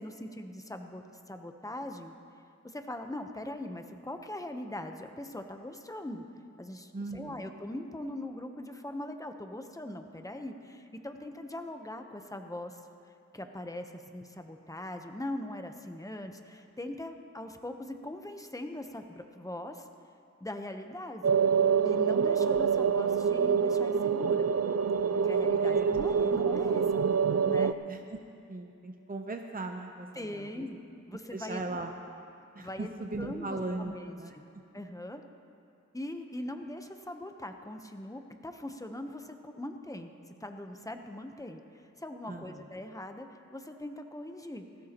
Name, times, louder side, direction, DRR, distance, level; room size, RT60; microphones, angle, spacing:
voice 1, 0.0-2.1 2.6-6.2 6.6-12.8 13.3-19.9 20.4-21.2 21.8-24.5 25.1-27.0 27.5-27.7 30.1-30.8 31.1-31.8 32.6-34.5 34.7-35.2 35.9-40.1 40.4-44.7, left 1 dB, 10° left, 6 dB, 0.9 m, -41 dB
voice 2, 6.9-7.5 25.6-25.9 26.2-26.3 27.9-28.2 28.5-30.7 31.3-31.9 32.5-34.3 42.3-42.6, right 2 dB, 30° right, 4 dB, 0.7 m, -38 dB
sound 1, 21.2-27.7, right 6 dB, 55° right, 0.4 m, -26 dB
19.5 x 15.5 x 3.0 m, 2.6 s
wide cardioid pair, 60°, 30 cm